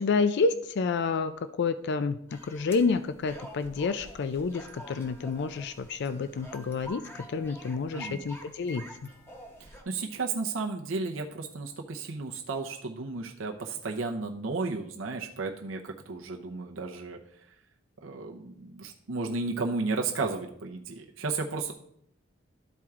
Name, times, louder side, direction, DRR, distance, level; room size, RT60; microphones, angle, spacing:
voice 1, 0.0-1.3 1.6-9.1, left 4 dB, 60° left, 11 dB, 0.4 m, -29 dB
sound 1, 2.3-9.8, equal, 10° left, 1.0 m, -47 dB
voice 2, 7.9-8.2 9.9-17.2 17.5-17.6 18.0-21.7, right 3 dB, 75° right, 1 dB, 0.7 m, -33 dB
12.0 x 4.5 x 3.6 m, 0.72 s
head